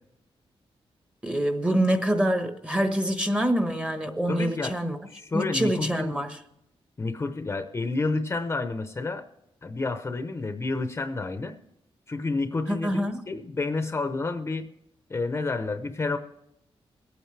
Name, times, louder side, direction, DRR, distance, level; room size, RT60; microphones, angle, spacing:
voice 1, 1.2-5.0 5.3-6.4 12.7-13.2, right 1 dB, 10° right, 7 dB, 1.1 m, -26 dB
voice 2, 4.3-4.7 5.1-6.1 7.0-9.3 9.6-11.6 12.1-14.7 15.1-16.2, left 3 dB, 25° left, 8 dB, 0.7 m, -29 dB
21.5 x 9.1 x 3.3 m, 0.85 s
wide cardioid pair, 145°, 10 cm